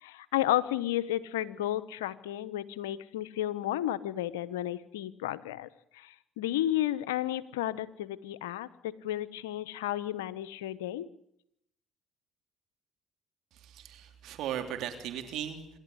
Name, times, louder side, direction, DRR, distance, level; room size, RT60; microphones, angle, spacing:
voice 1, 0.0-11.1, left 13 dB, 90° left, 15 dB, 1.0 m, -32 dB
voice 2, 13.5-15.8, right 10 dB, 70° right, 6 dB, 3.2 m, -37 dB
27.0 x 12.0 x 9.8 m, 0.73 s
hypercardioid pair, 60°, 0 cm